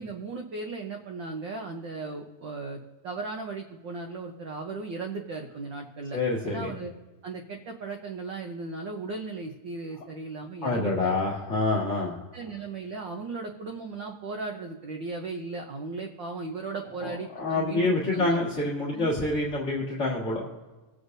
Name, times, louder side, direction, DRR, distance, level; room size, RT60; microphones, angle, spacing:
voice 1, 0.0-6.9 7.2-11.2 12.3-18.4 18.9-19.1, right 3 dB, 90° right, 3 dB, 1.0 m, -36 dB
voice 2, 6.1-6.7 10.6-12.1 17.0-20.5, left 2 dB, 30° left, -6 dB, 1.6 m, -27 dB
22.5 x 8.1 x 2.6 m, 1.2 s
omnidirectional pair, 3.3 m